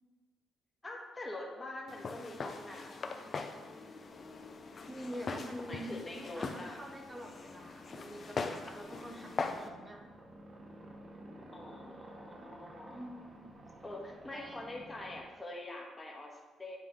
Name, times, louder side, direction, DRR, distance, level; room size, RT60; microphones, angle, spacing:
voice 1, 0.8-3.2 5.7-6.8 11.5-13.0 13.8-16.8, left 2 dB, 20° left, -1 dB, 1.4 m, -45 dB
Walk footsteps, 1.9-9.7, left 4 dB, 45° left, 0.5 m, -41 dB
sound 1, 4.0-15.2, right 1 dB, 40° right, 1.1 m, -54 dB
voice 2, 4.9-10.0 12.9-13.5 14.3-14.7, equal, 20° right, 2 dB, 0.8 m, -46 dB
9.4 x 3.3 x 3.6 m, 1.3 s
cardioid pair, 90°, 0 cm